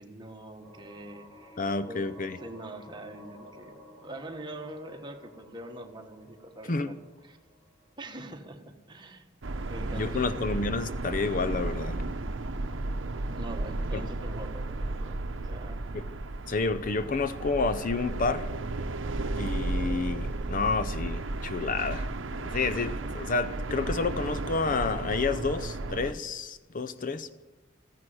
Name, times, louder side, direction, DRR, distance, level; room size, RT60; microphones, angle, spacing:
voice 1, 0.0-2.0 2.4-7.4 8.0-9.3 9.7-10.4 13.3-15.9, right 1 dB, 25° right, 4 dB, 1.5 m, -44 dB
sound 1, 0.6-8.2, equal, 25° left, 3.2 m, -53 dB
voice 2, 1.6-2.4 6.7-6.9 10.0-12.0 13.9-14.0 15.9-16.1 16.5-18.5 19.4-27.3, left 4 dB, 45° left, 12 dB, 0.6 m, -30 dB
sound 2, 9.4-26.1, right 2 dB, 75° right, 0.8 m, -34 dB
15.0 x 10.5 x 7.9 m, 1.1 s
head